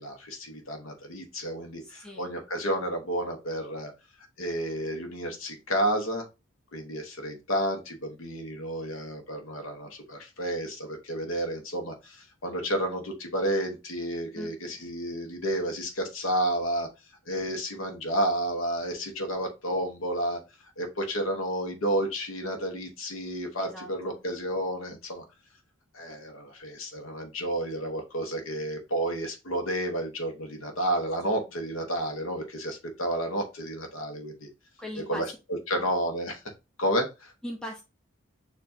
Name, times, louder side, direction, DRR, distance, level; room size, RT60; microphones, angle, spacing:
voice 1, 0.0-3.9 4.4-6.3 6.7-16.9 17.3-20.4 20.8-25.2 25.9-34.5 35.1-35.3 35.7-36.4 36.8-37.3, right 1 dB, 80° left, 0.9 m, -31 dB
voice 2, 1.8-2.3 14.4-14.9 23.6-24.2 34.8-35.4 35.7-35.8 37.4-37.8, left 1 dB, 5° left, 0.5 m, -40 dB
6.8 x 2.5 x 2.6 m
head